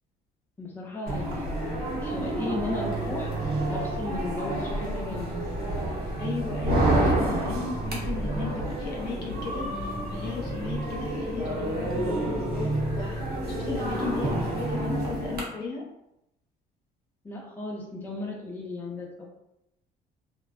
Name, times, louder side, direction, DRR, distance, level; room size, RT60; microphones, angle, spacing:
voice 1, 0.6-5.4 17.2-19.2, left 2 dB, 10° left, -2 dB, 0.5 m, -36 dB
sound 1, 1.1-15.4, right 1 dB, 70° right, 0.8 m, -29 dB
voice 2, 6.2-15.9, left 4 dB, 70° left, -3 dB, 0.8 m, -36 dB
2.5 x 2.1 x 2.3 m, 0.83 s
cardioid pair, 110°, 17 cm